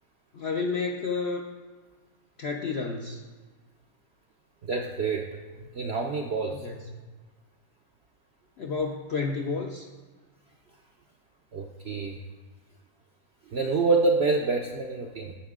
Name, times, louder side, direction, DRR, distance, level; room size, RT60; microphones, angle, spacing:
voice 1, 0.3-1.4 2.4-3.2 6.5-6.8 8.6-9.8, left 4 dB, 65° left, 1 dB, 0.6 m, -30 dB
voice 2, 4.6-5.3 5.5-6.7 11.5-12.2 13.5-15.4, right 3 dB, 65° right, 1 dB, 0.6 m, -27 dB
10.0 x 5.8 x 3.6 m, 1.4 s
omnidirectional pair, 1.7 m